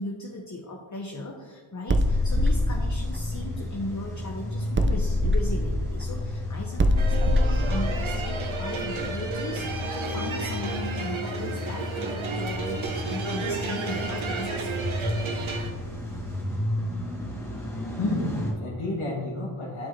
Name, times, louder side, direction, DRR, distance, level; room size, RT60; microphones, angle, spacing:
voice 1, 0.0-14.9, left 2 dB, 35° left, -1 dB, 0.8 m, -37 dB
sound 1, 1.9-4.2 4.8-9.4, left 1 dB, 25° right, 0.5 m, -24 dB
Car / Engine starting / Idling, 2.0-18.5, left 1 dB, 5° left, 1.8 m, -33 dB
sound 2, 7.0-15.7, right 4 dB, 70° right, 1.0 m, -33 dB
voice 2, 17.9-19.9, left 2 dB, 75° left, -6 dB, 1.5 m, -30 dB
11.5 x 4.7 x 2.8 m, 1.4 s
wide cardioid pair, 90°, 50 cm